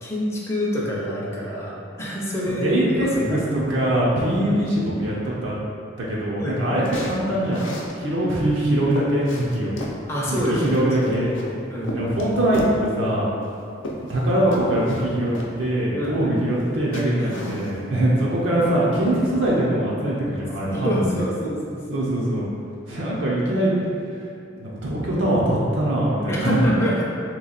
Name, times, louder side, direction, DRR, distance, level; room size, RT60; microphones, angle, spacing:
voice 1, 0.0-3.4 4.4-4.6 6.4-6.8 10.1-12.4 15.9-16.6 17.1-17.4 20.7-22.1 26.3-27.0, equal, 15° left, -6 dB, 0.6 m, -27 dB
voice 2, 2.6-5.6 6.0-7.6 8.0-9.7 10.3-11.3 11.9-13.3 14.1-15.3 15.6-21.1 21.9-22.5 22.9-23.8 24.6-26.7, right 1 dB, 70° right, -6 dB, 0.7 m, -22 dB
sound 1, 6.8-8.0 8.5-8.6 8.9-10.0 10.4-11.5 11.8-12.8 13.4-14.3 14.5-15.0 15.3-15.5 16.6-16.7 16.9-18.0 18.4-18.8 19.1-19.6, equal, 85° left, 0.6 m, -35 dB
3.3 x 3.1 x 4.0 m, 2.5 s
head